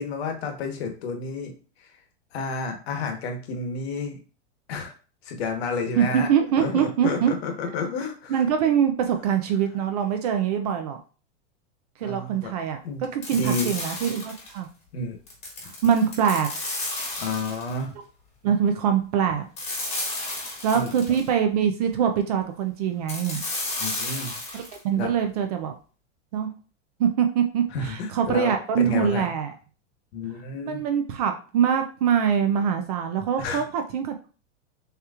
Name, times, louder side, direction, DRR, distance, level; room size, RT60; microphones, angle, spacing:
voice 1, 0.0-1.5 1.8-1.9 2.3-4.2 4.7-4.9 5.2-6.3 6.6-8.4 12.0-12.5 12.8-13.7 14.9-15.2 17.2-17.9 20.7-20.9 23.8-24.3 25.0-25.1 27.7-29.3 30.1-30.8 33.4-33.6, left 3 dB, 55° left, 5 dB, 1.2 m, -30 dB
voice 2, 6.0-7.3 8.3-11.0 12.0-14.7 15.6-16.5 18.4-19.5 20.6-23.4 24.5-25.8 26.3-26.5 27.0-29.5 30.7-34.3, right 8 dB, 35° right, 6 dB, 0.4 m, -24 dB
sound 1, 13.2-14.6 15.3-17.8 19.6-21.3 23.1-24.8, left 2 dB, 15° left, 1.3 m, -32 dB
6.5 x 3.0 x 2.4 m, 0.37 s
supercardioid pair, 155°, 37 cm